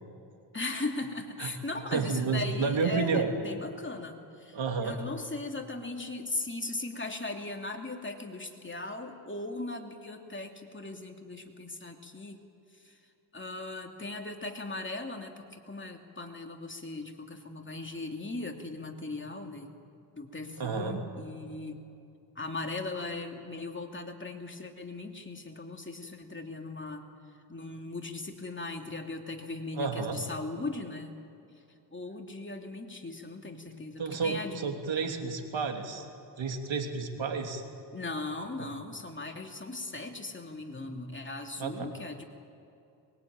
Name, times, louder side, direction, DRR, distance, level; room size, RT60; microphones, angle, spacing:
voice 1, 0.5-12.4 12.7-13.0 13.3-19.7 20.1-21.8 22.3-27.0 27.5-31.2 31.9-34.7 37.9-42.2, left 2 dB, 25° left, 3 dB, 2.9 m, -38 dB
voice 2, 1.9-3.3 4.5-5.0 20.6-21.0 29.7-30.2 34.0-36.1 36.4-37.6 38.6-38.7 41.6-41.9, right 5 dB, 70° right, 4 dB, 3.1 m, -31 dB
23.0 x 22.0 x 9.1 m, 2.6 s
cardioid pair, 75°, 47 cm